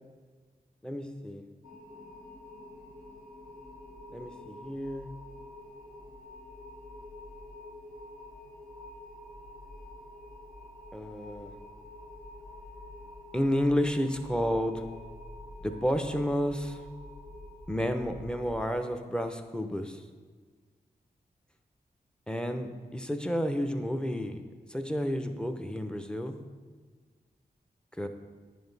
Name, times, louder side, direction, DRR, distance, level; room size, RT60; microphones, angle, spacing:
voice 1, 0.8-1.4 4.1-5.1 10.9-11.5 13.3-14.8 15.6-16.8 17.7-20.0 22.3-24.4 24.7-26.3 28.0-28.1, equal, 5° left, 6 dB, 0.7 m, -31 dB
sound 1, 1.6-18.7, left 1 dB, 75° left, 1.6 m, -47 dB
9.4 x 5.2 x 4.0 m, 1.5 s
cardioid pair, 60°, 16 cm